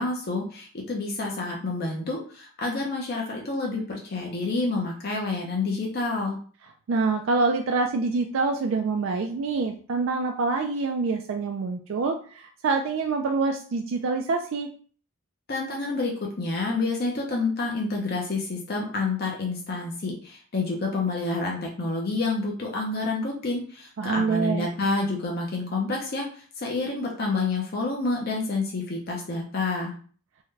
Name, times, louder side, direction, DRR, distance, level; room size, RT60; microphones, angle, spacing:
voice 1, 0.0-6.4 15.5-29.9, left 3 dB, 45° left, -1 dB, 0.6 m, -28 dB
voice 2, 6.9-14.7 24.0-24.7, right 4 dB, 60° right, 3 dB, 0.3 m, -26 dB
3.6 x 2.1 x 3.1 m, 0.43 s
head